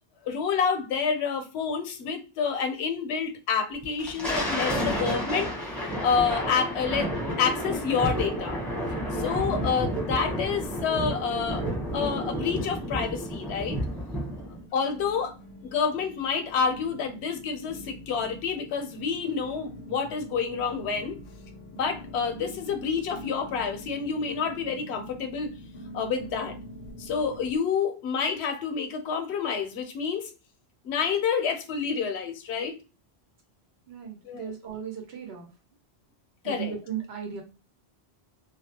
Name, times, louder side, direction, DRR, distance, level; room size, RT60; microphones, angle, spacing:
voice 1, 0.2-5.5 6.0-8.6 9.1-11.6 11.9-13.8 14.7-15.4 15.7-21.2 21.7-25.5 25.9-26.5 27.0-30.3 30.8-32.8 34.2-34.5 36.4-36.7, left 6 dB, 80° left, 0.8 m, -28 dB
Thunder, 3.8-14.6, equal, ahead, 0.7 m, -31 dB
sound 1, 10.1-10.2 10.4-11.1 11.6-11.7 12.4-27.6, left 1 dB, 55° left, 0.6 m, -45 dB
voice 2, 33.9-35.5 36.4-37.4, right 8 dB, 75° right, 1.0 m, -36 dB
2.3 x 2.0 x 2.8 m
omnidirectional pair, 1.1 m